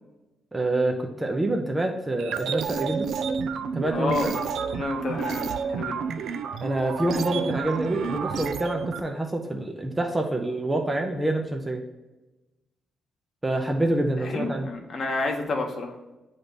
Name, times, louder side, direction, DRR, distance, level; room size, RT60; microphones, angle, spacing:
voice 1, 0.5-3.1 3.7-4.3 6.6-11.8 13.4-14.7, right 1 dB, 10° right, 2 dB, 0.6 m, -27 dB
sound 1, 2.2-9.0, right 6 dB, 70° right, 0.4 m, -30 dB
voice 2, 3.9-4.5 4.7-6.1 14.2-15.9, left 3 dB, 45° left, 2 dB, 1.1 m, -30 dB
8.5 x 3.4 x 4.0 m, 1.1 s
cardioid pair, 155°, 0 cm